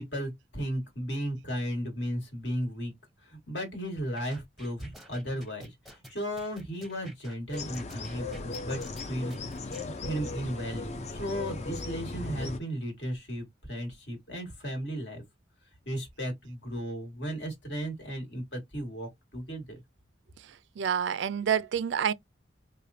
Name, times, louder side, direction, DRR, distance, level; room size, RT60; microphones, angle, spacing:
voice 1, 0.0-2.9 3.2-15.2 15.9-19.8, equal, 60° left, 1.7 m, -35 dB
sound 1, 4.2-9.9, equal, ahead, 0.8 m, -50 dB
sound 2, 7.5-12.6, left 3 dB, 35° left, 0.5 m, -37 dB
voice 2, 20.8-22.1, right 8 dB, 65° right, 0.3 m, -27 dB
5.1 x 2.2 x 2.6 m
head